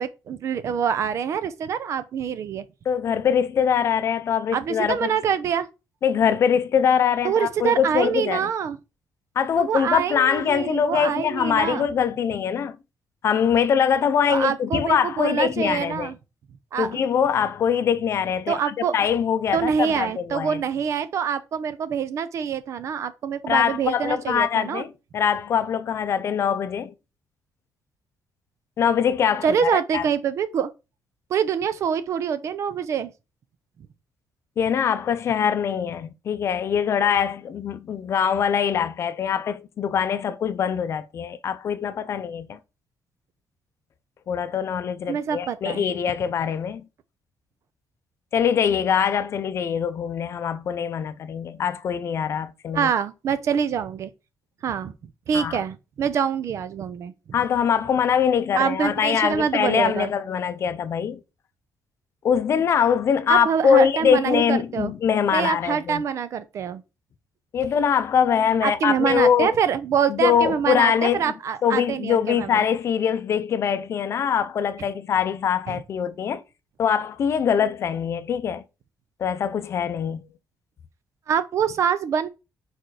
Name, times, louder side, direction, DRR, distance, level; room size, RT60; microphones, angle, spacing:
voice 1, 0.0-2.7 4.5-5.7 7.2-8.8 9.6-11.9 14.3-16.1 16.7-17.0 18.5-19.0 19.5-24.8 29.4-30.7 31.3-33.1 45.1-45.8 52.7-54.1 54.6-54.9 55.3-57.4 58.6-60.1 63.3-64.9 65.3-66.8 68.6-72.7 75.7-75.8 81.3-82.3, right 7 dB, 50° right, 0.6 m, -25 dB
voice 2, 2.9-5.1 6.0-8.5 9.4-12.8 13.2-16.1 16.8-20.6 23.5-26.9 28.8-30.0 34.6-42.6 44.3-46.8 48.3-52.9 55.3-55.6 57.3-61.2 62.2-66.0 67.5-69.5 70.1-71.2 71.6-76.4 76.8-78.6 79.2-80.2, left 7 dB, 45° left, 0.6 m, -23 dB
4.6 x 4.4 x 4.8 m
cardioid pair, 180°, 7 cm